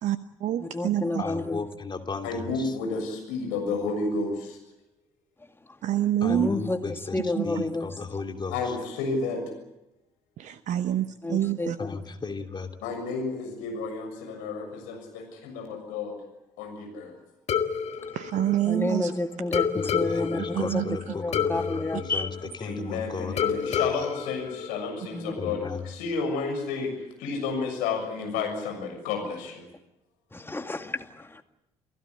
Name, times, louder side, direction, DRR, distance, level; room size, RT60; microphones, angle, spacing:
voice 1, 0.0-1.2 5.8-6.5 7.3-7.6 10.4-11.8 18.1-19.1 20.5-21.1, right 11 dB, 55° right, 12 dB, 1.0 m, -27 dB
voice 2, 0.6-1.6 5.7-5.8 6.3-7.9 11.2-11.9 18.6-20.8 21.1-22.3 25.1-25.5 30.3-31.4, left 2 dB, 15° left, 7 dB, 2.2 m, -30 dB
voice 3, 1.2-2.7 6.2-8.7 11.8-12.7 19.8-22.3 22.6-23.9 25.4-25.8, left 4 dB, 30° left, 5 dB, 2.8 m, -35 dB
voice 4, 2.2-4.6 8.5-9.4 12.8-16.2 16.6-17.2 22.6-29.7, left 4 dB, 70° left, 3 dB, 7.0 m, -31 dB
sound 1, 17.5-19.1 19.5-22.9 23.4-25.3, left 7 dB, 50° left, 2.2 m, -30 dB
28.5 x 17.0 x 8.7 m, 0.92 s
figure-of-eight pair, 50°, 15 cm